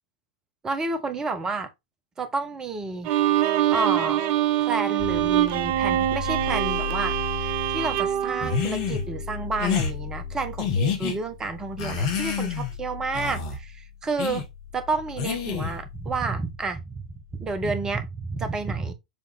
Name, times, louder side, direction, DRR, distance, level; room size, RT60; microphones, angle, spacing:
voice 1, 0.6-1.7 2.2-3.1 3.7-4.2 4.6-7.2 7.4-14.5 14.7-18.9, right 3 dB, 15° right, 1.4 m, -30 dB
Bowed string instrument, 3.0-9.3, right 12 dB, 40° right, 0.8 m, -24 dB
sound 1, 5.0-17.7, left 6 dB, 5° left, 1.7 m, -37 dB
sound 2, 8.4-9.0 9.6-9.9 10.6-11.2 11.8-12.7 13.1-13.6 14.2-14.4 15.2-15.8, left 6 dB, 45° left, 2.3 m, -27 dB
7.2 x 3.7 x 4.3 m
figure-of-eight pair, 95°, 4 cm